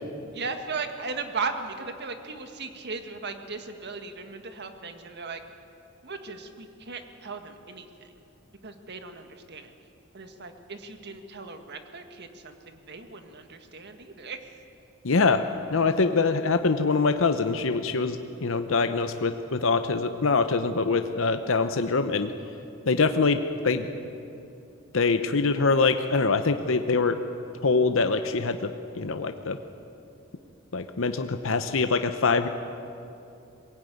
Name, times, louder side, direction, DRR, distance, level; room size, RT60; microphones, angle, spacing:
voice 1, 0.3-5.4 6.0-8.1 8.6-9.7 10.1-14.4, right 4 dB, 55° right, 7 dB, 1.7 m, -37 dB
voice 2, 15.0-15.4 15.7-22.3 22.9-23.9 24.9-27.2 27.6-28.7 29.0-29.6 30.7-32.5, left 4 dB, 70° left, 8 dB, 0.8 m, -24 dB
22.0 x 16.5 x 9.3 m, 2.8 s
head